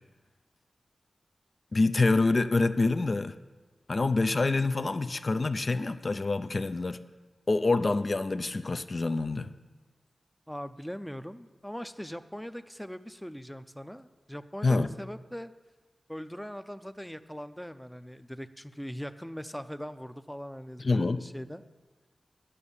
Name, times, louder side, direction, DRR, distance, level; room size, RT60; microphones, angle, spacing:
voice 1, 1.7-3.4 3.9-7.0 7.5-9.5 14.6-14.9 20.8-21.2, left 3 dB, 50° left, 11 dB, 0.5 m, -26 dB
voice 2, 10.5-15.5 16.1-21.6, equal, 5° left, 12 dB, 0.6 m, -41 dB
10.0 x 6.4 x 7.0 m, 1.3 s
cardioid pair, 40°, 0 cm